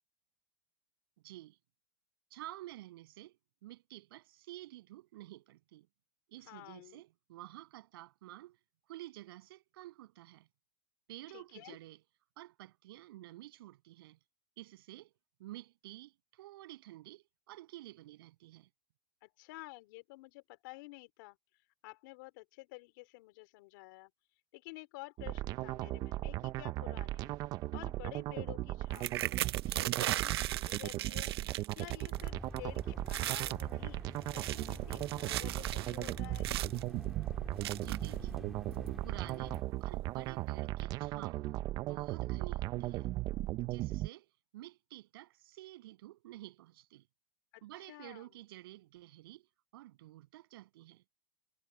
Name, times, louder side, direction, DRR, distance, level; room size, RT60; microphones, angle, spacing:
voice 1, 1.2-1.6 2.3-3.4 3.6-5.9 6.3-8.6 8.9-10.5 11.1-12.0 12.4-14.2 14.6-15.1 15.4-18.7 37.8-38.5 39.0-41.4 41.7-43.1 43.5-47.1 47.6-49.5 49.7-51.0, right 16 dB, 65° right, 7.5 m, -51 dB
voice 2, 6.5-7.0 11.3-11.8 19.2-21.4 21.8-24.1 24.5-36.5 47.5-47.6 47.9-48.3, left 23 dB, 55° left, 4.2 m, -51 dB
sound 1, 25.2-44.1, right 17 dB, 30° right, 0.5 m, -37 dB
sound 2, 28.9-32.3 32.6-32.8 33.1-33.6 34.2-36.8 37.6-38.2 38.9-39.0 39.3-39.6, right 14 dB, 80° right, 0.5 m, -37 dB
sound 3, 32.1-39.6, right 1 dB, ahead, 1.8 m, -48 dB
supercardioid pair, 155°, 13 cm